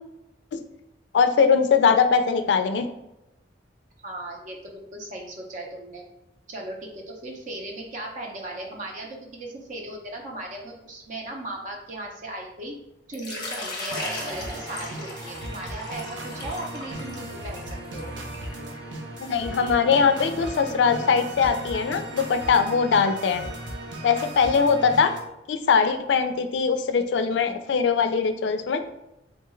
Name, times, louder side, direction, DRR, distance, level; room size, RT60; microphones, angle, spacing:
voice 1, 1.1-2.9 19.2-23.4 24.0-25.1 25.5-28.8, left 5 dB, 70° left, 9 dB, 0.3 m, -21 dB
voice 2, 4.0-6.0 6.5-12.7 13.1-18.1, right 1 dB, 45° right, 0 dB, 0.6 m, -37 dB
Water / Liquid, 13.1-18.7, left 2 dB, 25° left, 0.7 m, -37 dB
sound 1, 13.9-25.2, right 1 dB, 90° right, 0.6 m, -36 dB
3.6 x 2.3 x 3.0 m, 0.89 s
head